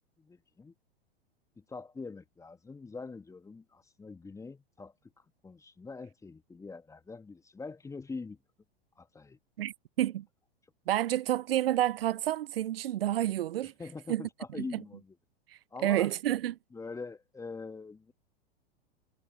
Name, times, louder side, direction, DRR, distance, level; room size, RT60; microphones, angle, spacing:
voice 1, 0.2-0.7 1.6-4.9 5.4-8.4 9.0-9.4 13.8-15.1 15.7-16.1 16.7-18.1, left 4 dB, 10° left, 1.4 m, -44 dB
voice 2, 9.6-10.3 10.9-13.7 14.1-14.8 15.8-16.6, right 13 dB, 70° right, 0.5 m, -29 dB
figure-of-eight pair, 100°, 30 cm